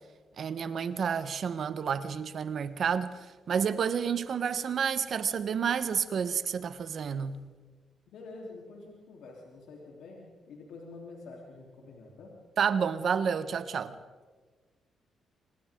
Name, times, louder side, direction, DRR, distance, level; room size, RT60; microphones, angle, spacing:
voice 1, 0.4-3.2 3.5-7.4 12.6-13.9, right 7 dB, 60° right, 1.2 m, -30 dB
voice 2, 8.1-12.3, left 3 dB, 85° left, 3.6 m, -47 dB
27.5 x 26.0 x 3.8 m
cardioid pair, 85°, 0 cm